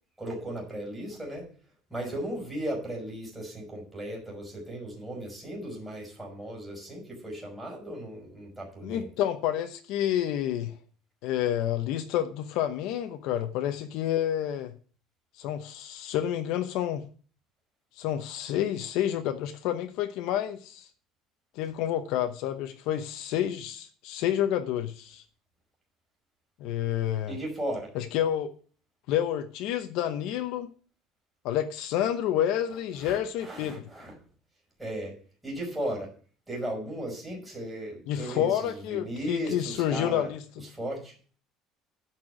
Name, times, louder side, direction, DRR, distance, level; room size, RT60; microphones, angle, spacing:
voice 1, 0.2-1.5 1.9-9.1 27.3-27.9 33.0-34.1 34.8-35.1 35.4-36.1 36.5-40.3 40.7-41.1, right 1 dB, 5° right, 4.5 m, -36 dB
voice 2, 8.8-10.7 11.2-14.7 15.4-17.0 18.0-20.9 21.5-25.2 26.6-27.4 27.9-28.5 29.1-30.7 31.4-33.9 38.1-40.6, left 11 dB, 65° left, 0.9 m, -29 dB
11.0 x 4.6 x 7.7 m
cardioid pair, 165°, 0 cm